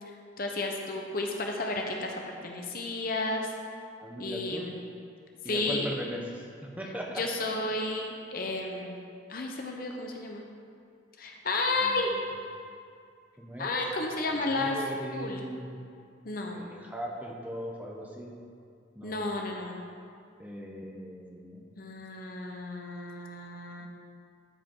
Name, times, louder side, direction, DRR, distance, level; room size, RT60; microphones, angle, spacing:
voice 1, 0.4-3.5 4.2-4.7 5.5-5.9 7.2-9.0 9.3-10.4 11.2-12.1 13.6-14.7 15.1-15.4 16.2-16.6 19.0-19.8 21.7-23.9, left 2 dB, 45° left, 2 dB, 0.8 m, -32 dB
voice 2, 4.0-4.7 5.4-7.6 11.8-11.9 13.4-13.7 14.3-15.7 16.5-18.3 19.0-19.3 20.4-21.6 23.8-23.9, equal, 10° right, -1 dB, 0.9 m, -39 dB
13.0 x 5.0 x 4.6 m, 2.4 s
head